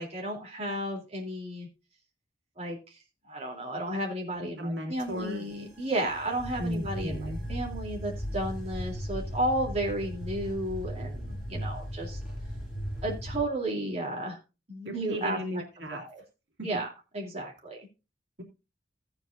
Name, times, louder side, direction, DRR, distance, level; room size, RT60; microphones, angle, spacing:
voice 1, 0.0-1.7 2.6-2.8 3.2-12.2 13.0-14.4 14.7-15.4 15.9-16.2 16.6-16.9 17.1-17.8, right 1 dB, 35° right, -1 dB, 3.4 m, -33 dB
voice 2, 4.3-5.4 6.6-7.4 14.8-16.0 16.6-16.7, equal, 85° right, 1 dB, 2.6 m, -35 dB
sound 1, 5.0-13.4, equal, ahead, 6.8 m, -37 dB
15.5 x 8.9 x 2.7 m, 0.29 s
head